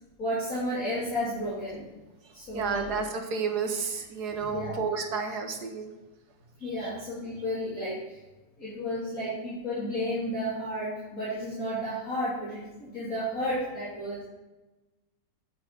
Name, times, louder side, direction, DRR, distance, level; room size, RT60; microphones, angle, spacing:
voice 1, 0.2-1.9 2.3-2.9 4.5-4.7 6.6-8.2 8.6-14.2, equal, 50° left, -10 dB, 3.3 m, -32 dB
voice 2, 2.5-5.9 6.6-6.9, right 5 dB, 65° right, 5 dB, 1.7 m, -31 dB
9.0 x 6.2 x 5.3 m, 1.1 s
omnidirectional pair, 1.9 m